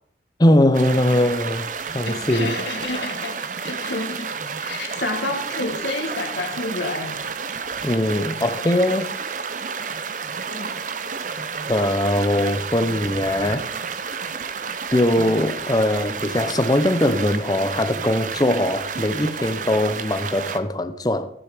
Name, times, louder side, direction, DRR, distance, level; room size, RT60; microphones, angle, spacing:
voice 1, 0.4-1.7 1.9-2.5 7.8-9.1 11.7-13.7 14.9-21.3, left 1 dB, 20° left, 0.7 m, -21 dB
sound 1, 0.7-20.6, right 5 dB, 45° right, 0.7 m, -31 dB
voice 2, 2.1-3.4 3.6-4.3 4.6-7.2 10.5-10.8, left 2 dB, 75° left, 1.8 m, -29 dB
14.0 x 6.8 x 5.0 m
head